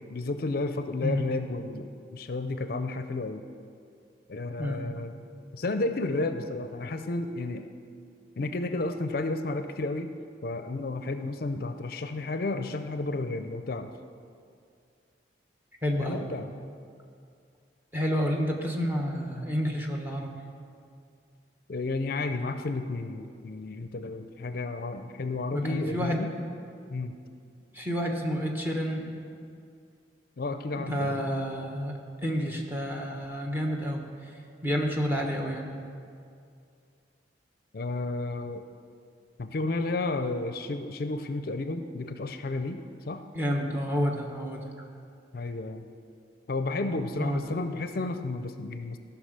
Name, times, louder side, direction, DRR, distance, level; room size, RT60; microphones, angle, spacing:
voice 1, 0.1-3.4 4.3-5.1 5.5-7.7 8.4-10.1 10.4-13.9 16.0-16.5 21.7-26.3 26.9-27.2 30.4-31.2 37.7-38.6 39.4-43.2 45.3-45.9 46.5-49.0, left 2 dB, 55° left, 9 dB, 0.5 m, -32 dB
voice 2, 15.8-16.2 17.9-20.3 25.5-26.3 27.7-29.1 30.7-34.4 34.6-35.7 43.3-44.6 46.9-47.4, equal, 10° right, 1 dB, 1.1 m, -30 dB
14.5 x 5.9 x 6.6 m, 2.4 s
head